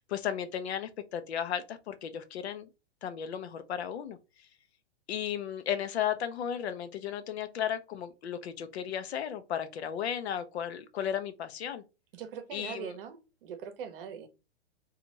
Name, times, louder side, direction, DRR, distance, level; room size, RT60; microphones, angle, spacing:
voice 1, 0.0-2.7 3.0-4.2 5.1-11.8 12.5-13.0, left 9 dB, 75° left, 0.7 m, -34 dB
voice 2, 12.1-14.3, right 7 dB, 55° right, 0.7 m, -42 dB
2.6 x 2.4 x 2.9 m
hypercardioid pair, 145°, 33 cm